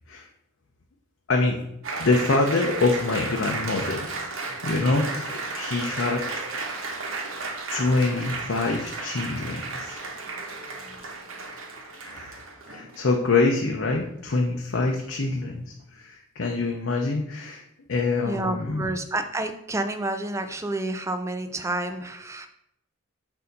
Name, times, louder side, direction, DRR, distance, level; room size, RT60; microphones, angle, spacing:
Applause, 1.8-13.2, right 3 dB, 70° right, 0.9 m, -34 dB
voice 1, 2.0-4.1 4.6-6.3 7.7-10.0 12.0-17.6 17.9-18.9, left 3 dB, 60° left, 1 dB, 0.6 m, -25 dB
voice 2, 18.2-22.5, right 2 dB, 15° right, 8 dB, 0.4 m, -29 dB
6.7 x 2.7 x 5.2 m, 0.78 s
head